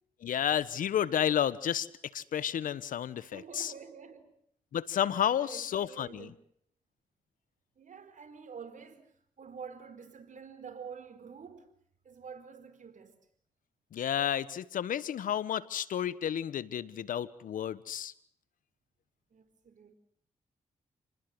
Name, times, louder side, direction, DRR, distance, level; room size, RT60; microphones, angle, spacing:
voice 1, 0.2-1.9 2.1-3.7 4.7-6.3 13.9-18.1, left 10 dB, 80° left, 1.3 m, -31 dB
voice 2, 3.2-4.3 5.2-6.3 7.8-11.7 12.0-13.2 19.3-19.9, right 6 dB, 65° right, 4.4 m, -48 dB
29.0 x 20.0 x 7.9 m
supercardioid pair, 45°, 14 cm